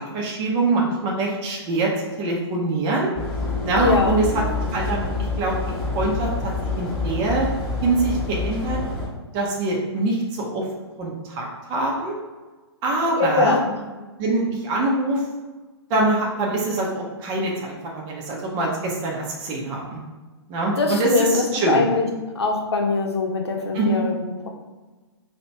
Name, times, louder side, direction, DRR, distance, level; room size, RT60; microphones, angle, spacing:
voice 1, 0.0-1.9 2.2-3.1 3.6-4.4 4.7-6.5 6.8-7.5 7.8-8.8 9.3-10.6 11.0-12.1 12.8-13.6 14.2-15.2 15.9-20.0 20.5-21.9 23.7-24.0, right 2 dB, 25° right, -2 dB, 0.7 m, -24 dB
sound 1, 3.2-9.1, left 3 dB, 5° left, 1.2 m, -27 dB
voice 2, 3.8-4.2 13.1-13.8 20.8-22.0 22.3-24.5, left 3 dB, 70° left, 1 dB, 0.8 m, -22 dB
2.9 x 2.9 x 4.5 m, 1.3 s
figure-of-eight pair, 120°, 14 cm